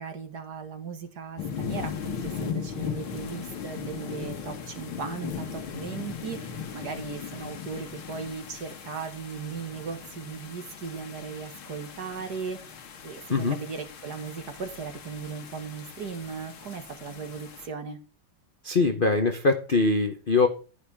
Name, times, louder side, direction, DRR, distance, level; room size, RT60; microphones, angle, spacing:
voice 1, 0.0-12.6 13.0-18.0, right 5 dB, 50° right, 1.9 m, -37 dB
sound 1, 1.4-17.7, left 7 dB, 70° left, 2.2 m, -38 dB
voice 2, 18.6-20.5, left 3 dB, 45° left, 0.7 m, -22 dB
10.5 x 10.0 x 3.5 m
omnidirectional pair, 2.4 m